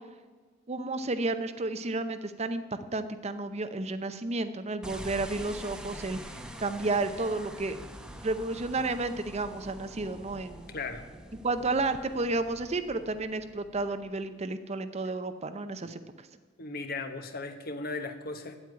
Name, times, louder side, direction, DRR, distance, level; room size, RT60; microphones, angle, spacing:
voice 1, 0.7-6.2 6.6-7.8 8.2-10.7 11.4-16.3, right 2 dB, 35° right, 10 dB, 0.6 m, -32 dB
sound 1, 4.8-14.2, right 1 dB, 5° right, 0.8 m, -45 dB
voice 2, 10.7-11.0 15.8-15.9 16.6-18.6, left 3 dB, 50° left, 7 dB, 1.2 m, -37 dB
9.3 x 8.4 x 9.5 m, 1.4 s
head